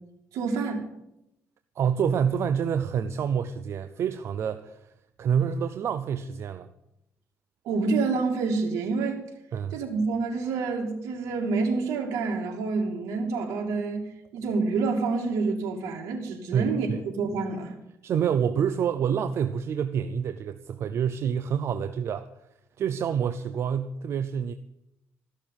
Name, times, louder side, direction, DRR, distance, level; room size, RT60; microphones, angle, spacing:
voice 1, 0.3-0.9 7.6-9.2 9.7-14.1 14.3-17.7, right 4 dB, 90° right, 0 dB, 2.5 m, -28 dB
voice 2, 1.8-4.9 5.2-6.7 9.5-9.7 16.5-17.0 18.0-22.3 22.8-24.5, right 7 dB, 60° right, 10 dB, 0.7 m, -27 dB
14.0 x 6.7 x 9.1 m, 0.84 s
cardioid pair, 110°, 5 cm